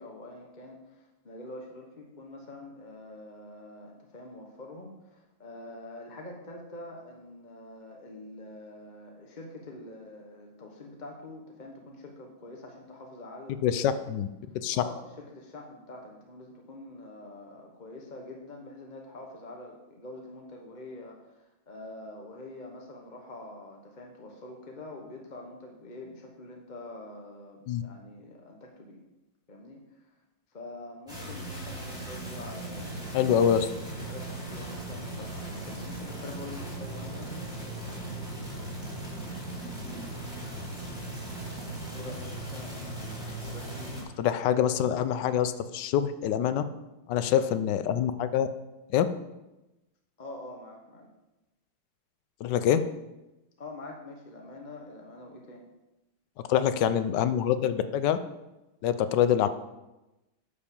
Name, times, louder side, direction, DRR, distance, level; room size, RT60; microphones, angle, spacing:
voice 1, 0.0-14.0 14.7-29.0 29.5-30.1 30.5-33.6 34.0-37.3 41.9-44.0 47.3-47.5 50.2-51.1 53.6-55.6, left 2 dB, 35° left, 1 dB, 0.8 m, -45 dB
voice 2, 13.6-14.3 14.5-14.8 27.7-27.8 33.1-33.7 44.2-46.6 47.1-48.5 48.9-49.1 52.4-52.8 56.5-58.2 58.8-59.5, left 9 dB, 70° left, 11 dB, 1.1 m, -25 dB
sound 1, 31.1-44.0, right 1 dB, ahead, 3.5 m, -38 dB
9.7 x 5.3 x 7.0 m, 1.0 s
omnidirectional pair, 2.3 m